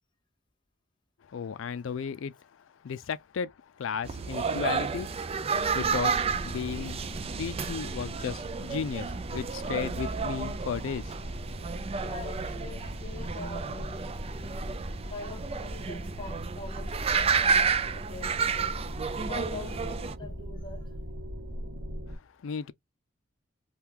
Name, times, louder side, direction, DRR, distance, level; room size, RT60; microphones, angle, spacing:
voice 1, 1.2-5.1 5.7-11.2 22.1-22.7, left 6 dB, 80° left, 0.4 m, -35 dB
sound 1, 4.0-20.2, right 5 dB, 30° right, 0.4 m, -31 dB
sound 2, 5.6-22.2, equal, 90° right, 0.9 m, -40 dB
voice 2, 12.0-14.7 15.1-21.0 21.6-21.7, left 3 dB, 25° left, 0.9 m, -44 dB
3.5 x 2.3 x 2.8 m
head